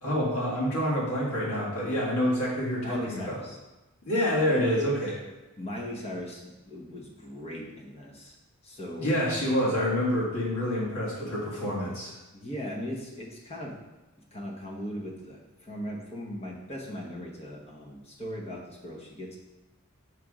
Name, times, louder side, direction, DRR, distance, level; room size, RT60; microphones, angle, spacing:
voice 1, 0.0-3.4 4.0-5.2 9.0-12.1, equal, 80° left, -6 dB, 1.9 m, -27 dB
voice 2, 2.8-3.6 5.6-8.4 8.6-9.1 12.3-13.7 14.3-19.4, equal, 30° left, -2 dB, 1.0 m, -38 dB
5.9 x 3.4 x 4.9 m, 1.1 s
head